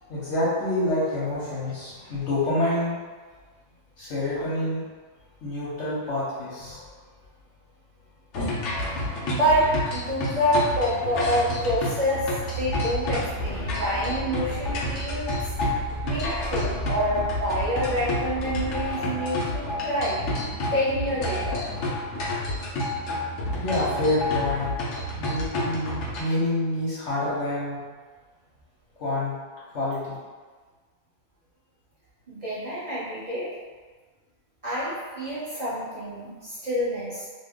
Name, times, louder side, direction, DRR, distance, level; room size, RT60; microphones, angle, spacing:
voice 1, 0.1-3.0 4.0-4.8 5.4-6.8 23.6-24.7 25.2-27.8 29.0-29.3 29.7-30.1, left 1 dB, 55° left, -8 dB, 0.8 m, -27 dB
sound 1, 8.3-26.2, left 1 dB, 80° left, 0.6 m, -30 dB
voice 2, 9.2-20.4 20.7-21.9 32.3-33.5 34.6-37.3, equal, 30° right, -12 dB, 0.6 m, -27 dB
sound 2, 12.5-18.9, right 1 dB, 20° left, 0.6 m, -36 dB
3.2 x 2.1 x 3.5 m, 1.4 s
omnidirectional pair, 2.1 m